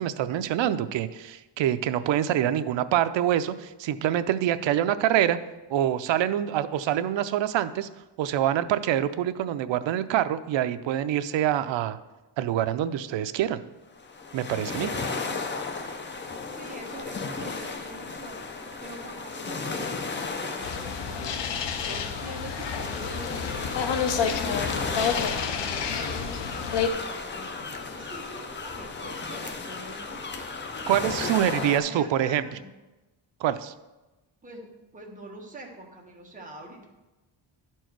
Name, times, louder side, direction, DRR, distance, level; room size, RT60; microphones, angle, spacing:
voice 1, 0.0-5.4 5.7-7.9 8.2-12.0 12.4-13.6 14.3-14.9 30.9-32.4 33.4-33.7, right 11 dB, 70° right, 12 dB, 0.5 m, -25 dB
sound 1, 14.0-31.8, left 4 dB, 25° left, 0.5 m, -34 dB
voice 2, 16.5-18.4 18.8-20.0 20.3-23.7 24.2-26.8 27.3-30.5 31.2-32.7 34.4-34.7 34.9-36.9, right 1 dB, 15° right, -1 dB, 1.2 m, -44 dB
sound 2, 20.6-26.9, left 7 dB, 60° left, 0.8 m, -29 dB
11.0 x 4.6 x 4.6 m, 1.1 s
wide cardioid pair, 165°, 47 cm